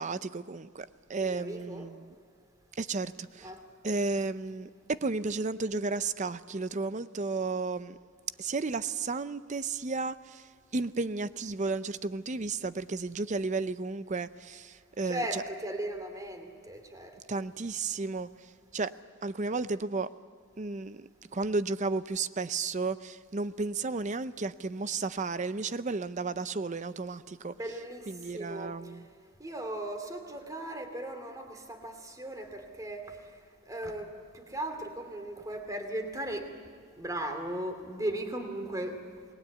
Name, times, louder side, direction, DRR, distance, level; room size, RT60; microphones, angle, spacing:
voice 1, 0.0-2.1 2.8-3.5 3.8-8.0 8.4-15.4 17.3-18.3 18.7-18.9 19.2-20.1 20.6-27.5 28.1-29.0, right 3 dB, 35° right, 0.6 m, -33 dB
voice 2, 1.2-1.9 3.4-3.6 15.0-17.5 27.5-28.8 29.4-33.2 33.7-34.1 34.3-36.4 37.0-39.0, right 1 dB, 15° right, 2.7 m, -37 dB
28.0 x 20.5 x 8.4 m
head